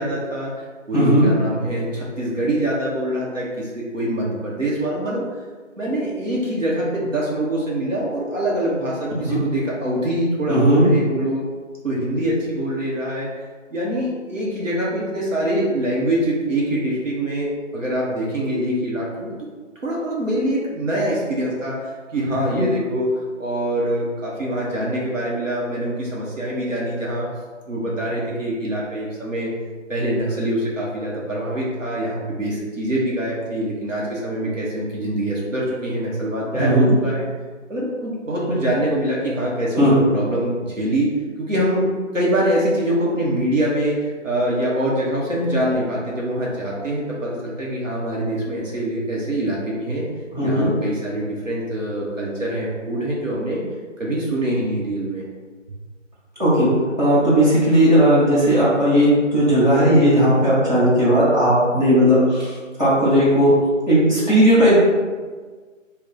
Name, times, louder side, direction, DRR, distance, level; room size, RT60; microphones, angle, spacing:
voice 1, 0.0-5.3 5.8-11.4 11.8-13.3 13.7-19.5 19.8-27.3 27.7-29.5 29.9-37.3 37.7-41.1 41.4-50.1 50.4-53.6 54.0-55.2, right 1 dB, 75° right, -5 dB, 0.9 m, -24 dB
voice 2, 0.9-1.3 9.3-9.4 10.5-10.9 22.5-22.6 36.6-36.9 39.8-39.9 50.3-50.7 56.4-56.7 57.0-62.5 62.8-63.5 63.9-64.8, equal, 35° right, -11 dB, 1.2 m, -16 dB
2.6 x 2.2 x 3.7 m, 1.4 s
figure-of-eight pair, 175°, 39 cm